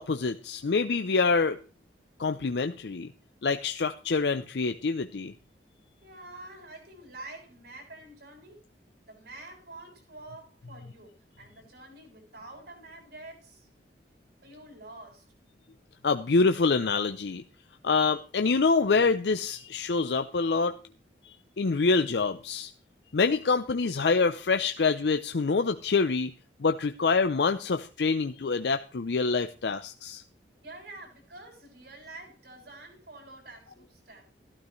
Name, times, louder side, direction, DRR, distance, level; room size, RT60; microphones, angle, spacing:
voice 1, 0.0-1.6 2.2-3.1 3.4-5.3 16.0-17.4 17.8-20.8 21.6-22.7 23.1-26.3 26.6-30.2, left 4 dB, 70° left, 8 dB, 0.6 m, -26 dB
voice 2, 6.0-8.6 9.0-13.7 14.4-15.3 30.6-34.3, right 2 dB, 70° right, -1 dB, 6.9 m, -47 dB
14.5 x 12.5 x 3.2 m, 0.34 s
head